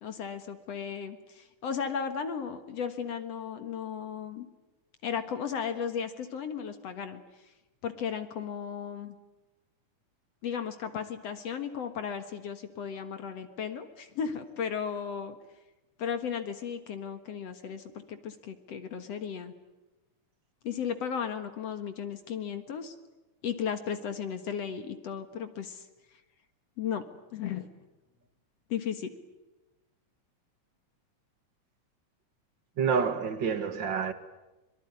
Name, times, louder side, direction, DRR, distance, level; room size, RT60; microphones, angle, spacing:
voice 1, 0.0-4.5 5.0-7.2 7.8-9.2 10.4-15.4 16.0-19.5 20.6-23.0 23.4-25.9 26.8-27.0 27.3-27.7 28.7-29.1, left 7 dB, 60° left, 2.5 m, -35 dB
voice 2, 32.8-34.1, right 6 dB, 45° right, 1.8 m, -28 dB
25.0 x 23.5 x 9.7 m
omnidirectional pair, 3.5 m